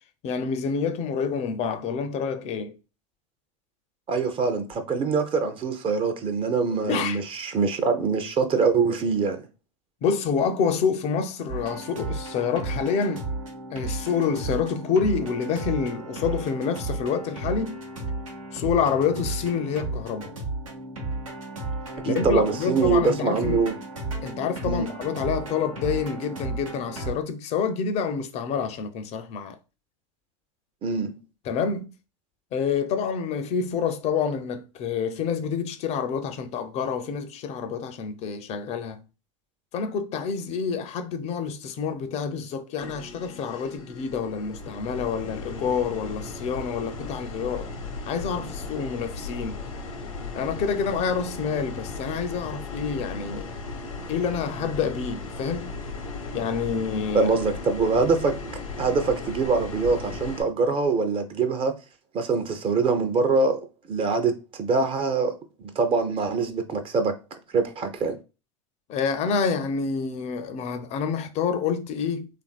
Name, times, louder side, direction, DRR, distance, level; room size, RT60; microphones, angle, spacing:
voice 1, 0.2-2.7 6.9-7.2 10.0-13.3 13.7-17.8 18.5-20.3 22.0-23.6 24.2-29.6 31.5-31.9 32.5-39.0 39.7-47.7 48.1-49.6 50.3-53.5 54.1-55.7 56.3-57.3 68.9-72.3, left 6 dB, 40° left, 0.4 m, -27 dB
voice 2, 4.1-9.4 22.0-23.7 24.6-24.9 30.8-31.1 57.1-58.3 58.8-61.7 62.1-65.4 65.7-67.1 67.5-68.2, right 4 dB, 35° right, 0.5 m, -24 dB
sound 1, 11.5-27.1, right 2 dB, 85° right, 0.9 m, -33 dB
sound 2, 42.8-60.4, left 3 dB, 85° left, 0.6 m, -36 dB
3.0 x 2.5 x 2.3 m
hypercardioid pair, 85°, 17 cm